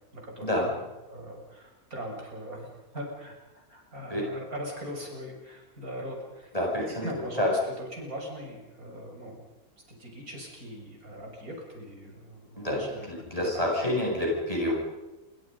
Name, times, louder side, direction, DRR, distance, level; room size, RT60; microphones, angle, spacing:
voice 1, 0.1-6.5 6.9-9.4 9.9-14.0, equal, 70° right, 0 dB, 7.1 m, -40 dB
voice 2, 6.5-7.5 12.6-12.8 13.1-14.7, left 1 dB, 25° left, -3 dB, 7.9 m, -28 dB
28.5 x 24.5 x 5.5 m, 1.1 s
omnidirectional pair, 1.6 m